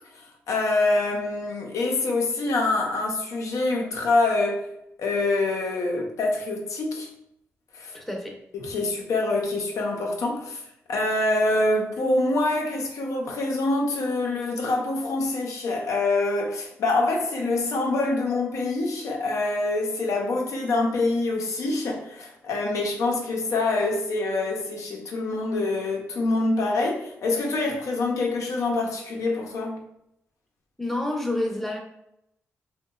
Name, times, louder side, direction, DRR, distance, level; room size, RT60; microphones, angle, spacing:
voice 1, 0.1-4.7 5.0-7.1 7.7-8.0 8.5-10.6 10.9-29.8, left 2 dB, 75° left, 0 dB, 0.6 m, -25 dB
voice 2, 7.9-8.3 30.8-31.8, left 1 dB, 5° left, 1 dB, 0.6 m, -28 dB
2.8 x 2.2 x 2.2 m, 0.80 s
supercardioid pair, 50°, 5 cm